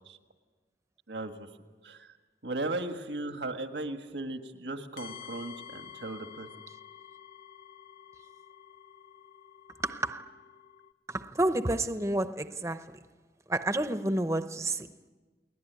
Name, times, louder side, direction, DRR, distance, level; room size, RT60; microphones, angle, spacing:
voice 1, 1.1-1.5 1.8-2.1 2.4-6.5, right 2 dB, 85° right, 1.6 m, -36 dB
sound 1, 5.0-10.9, left 9 dB, 65° left, 1.5 m, -50 dB
voice 2, 9.8-10.3 11.1-13.0 13.5-14.9, right 1 dB, 15° right, 0.7 m, -30 dB
29.0 x 20.5 x 9.4 m
head